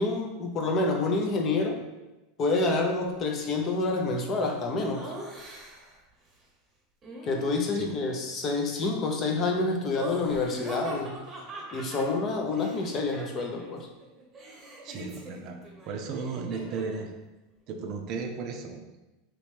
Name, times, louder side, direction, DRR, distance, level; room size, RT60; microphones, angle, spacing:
voice 1, 0.0-1.8 2.4-5.1 7.2-11.2 11.7-13.9, left 3 dB, 35° left, 2 dB, 0.7 m, -28 dB
Laughter, 4.9-6.0 7.0-8.0 9.8-13.7 14.0-17.1, right 1 dB, 25° right, 1.0 m, -42 dB
voice 2, 14.8-15.6 15.9-17.1 17.7-19.0, right 5 dB, 50° right, 5 dB, 0.5 m, -35 dB
3.1 x 3.0 x 3.4 m, 1.0 s
supercardioid pair, 115°, 0 cm